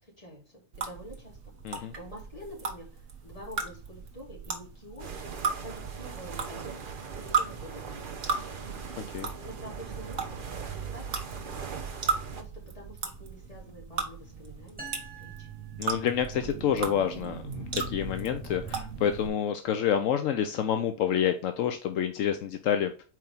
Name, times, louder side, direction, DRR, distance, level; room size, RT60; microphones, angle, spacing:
voice 1, 0.0-8.9 9.4-15.5, equal, 25° left, -3 dB, 2.8 m, -48 dB
sound 1, 0.7-19.3, right 5 dB, 70° right, 1.4 m, -36 dB
sound 2, 5.0-12.4, right 6 dB, 45° right, 0.9 m, -41 dB
voice 2, 9.0-9.3 15.8-22.9, left 9 dB, 80° left, 7 dB, 1.0 m, -28 dB
sound 3, 14.8-16.6, right 5 dB, 10° right, 0.8 m, -47 dB
4.8 x 4.5 x 5.3 m, 0.36 s
omnidirectional pair, 1.3 m